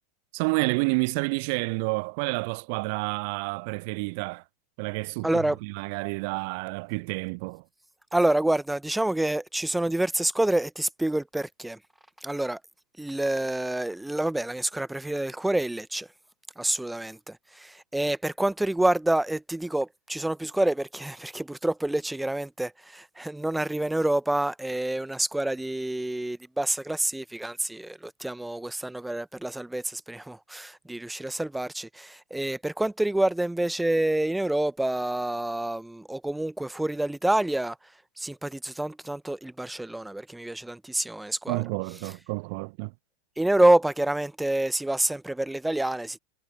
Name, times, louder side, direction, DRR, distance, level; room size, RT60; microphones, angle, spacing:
voice 1, 0.3-4.4 4.8-7.7 41.5-42.9, right 31 dB, 45° right, 0.9 m, -29 dB
voice 2, 5.2-5.6 8.1-11.8 12.2-12.6 13.0-16.1 16.6-37.8 38.2-41.6 43.4-46.2, right 1 dB, 5° right, 1.1 m, -27 dB
figure-of-eight pair, 90°, 0 cm